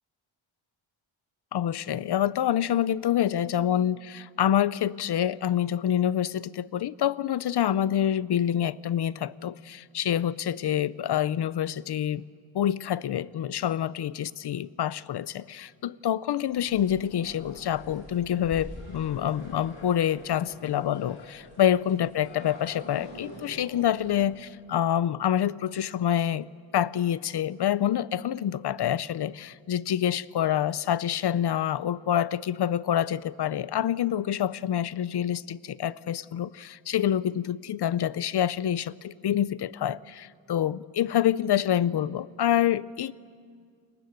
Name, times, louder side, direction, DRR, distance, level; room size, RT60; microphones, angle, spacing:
voice 1, 1.5-12.2 12.5-26.5 26.7-43.1, left 10 dB, 55° left, 19 dB, 0.6 m, -27 dB
sound 1, 16.5-24.2, left 2 dB, 85° left, 7.0 m, -45 dB
30.0 x 21.0 x 8.0 m, 2.1 s
wide cardioid pair, 180°, 48 cm